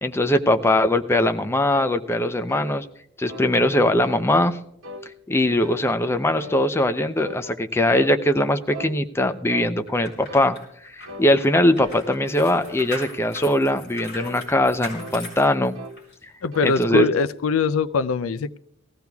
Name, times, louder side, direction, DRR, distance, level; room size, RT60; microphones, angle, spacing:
voice 1, 0.0-2.8 3.2-4.6 5.3-10.6 10.9-15.8 16.6-17.1, left 1 dB, 10° left, 9 dB, 0.5 m, -21 dB
sound 1, 1.7-2.0 2.5-2.7 3.3-3.5 4.0-4.3 4.8-5.1 5.6-5.9 6.4-6.6 7.2-8.2 8.7-9.0 9.5-9.7 10.3-10.5 11.1-11.3 11.8-12.1 12.6-12.9 13.4-13.6 14.2-14.4 15.0-15.2 15.7-16.0 16.5-16.8, left 1 dB, 65° right, 1.2 m, -38 dB
sound 2, 9.9-16.1 16.6-16.8, left 2 dB, 55° left, 5.2 m, -40 dB
voice 2, 16.4-18.6, left 5 dB, 75° left, 15 dB, 0.5 m, -22 dB
19.5 x 15.0 x 2.3 m, 0.73 s
head